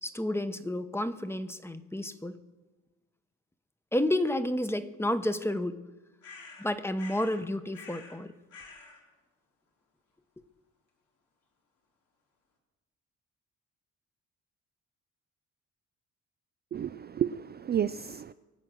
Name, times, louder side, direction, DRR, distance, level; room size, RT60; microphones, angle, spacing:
voice 1, 0.0-2.4 3.9-5.8 6.6-8.3, left 1 dB, 10° left, 11 dB, 1.0 m, -30 dB
sound 1, 6.2-7.4 7.7-8.2 8.5-9.0, left 4 dB, 85° left, 3.5 m, -48 dB
voice 2, 16.7-18.3, right 9 dB, 35° right, 12 dB, 0.4 m, -31 dB
23.0 x 7.9 x 6.2 m, 1.2 s
cardioid pair, 90°, 30 cm